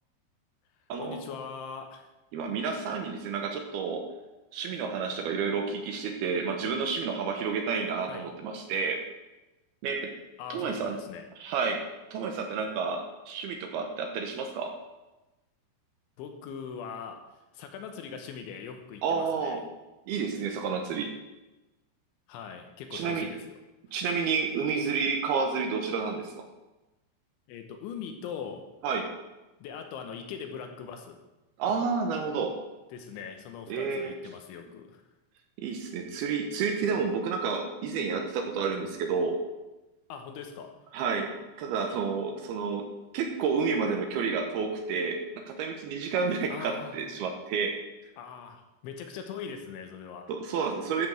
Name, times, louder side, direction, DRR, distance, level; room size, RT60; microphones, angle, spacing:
voice 1, 1.0-2.1 8.1-8.3 10.4-11.2 16.2-17.2 17.5-19.6 22.3-23.5 27.5-28.6 29.6-31.2 32.9-35.0 40.1-40.9 46.5-47.0 48.2-50.3, left 7 dB, 80° left, 4 dB, 3.3 m, -41 dB
voice 2, 2.3-4.0 4.5-9.0 9.8-10.1 10.5-11.0 11.4-11.8 12.1-14.7 19.0-19.6 20.1-21.1 22.9-23.3 23.9-26.5 28.8-29.1 31.6-32.6 33.7-34.1 35.6-39.4 40.9-42.9 43.1-47.7 50.3-51.1, right 5 dB, 75° right, 4 dB, 2.3 m, -30 dB
12.0 x 5.2 x 7.6 m, 1.1 s
omnidirectional pair, 5.6 m